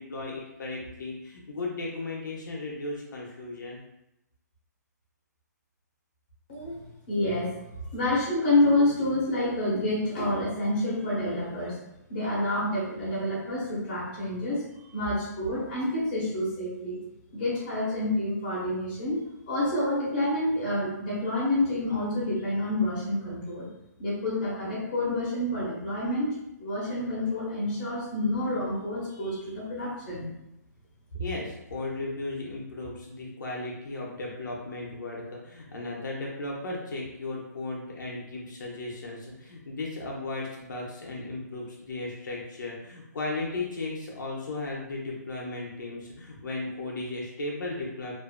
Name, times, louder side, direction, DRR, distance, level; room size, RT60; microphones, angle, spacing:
voice 1, 0.0-3.8 31.1-48.1, left 2 dB, 85° left, -2 dB, 0.7 m, -35 dB
voice 2, 7.1-7.5 7.9-11.8 12.1-17.0 17.3-19.2 19.5-23.7 24.0-26.3 26.6-30.3, left 1 dB, 30° left, -7 dB, 1.0 m, -28 dB
2.6 x 2.4 x 2.2 m, 0.88 s
hypercardioid pair, 180°, 10 cm